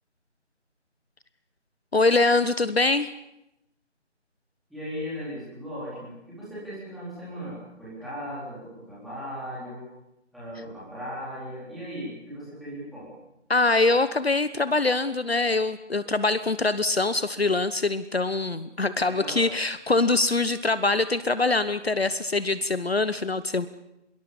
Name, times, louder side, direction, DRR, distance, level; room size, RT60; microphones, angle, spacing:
voice 1, 1.9-3.1 13.5-23.7, left 3 dB, 55° left, 14 dB, 1.1 m, -23 dB
voice 2, 4.7-9.9 10.3-13.1 19.0-19.5, equal, ahead, -11 dB, 4.2 m, -37 dB
24.5 x 22.5 x 7.2 m, 0.87 s
figure-of-eight pair, 160°, 36 cm